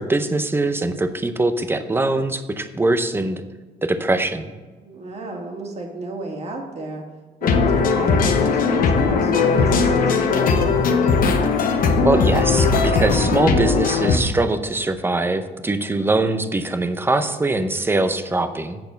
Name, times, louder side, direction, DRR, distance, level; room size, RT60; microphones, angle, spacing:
voice 1, 0.0-3.4 3.8-4.5 12.0-18.8, right 2 dB, 15° right, 10 dB, 0.7 m, -22 dB
voice 2, 4.8-7.0 7.4-10.6, right 2 dB, 40° right, 1 dB, 2.0 m, -32 dB
sound 1, 7.4-14.2, left 4 dB, 55° left, 1.1 m, -18 dB
8.2 x 6.7 x 5.2 m, 1.3 s
cardioid pair, 110°, 17 cm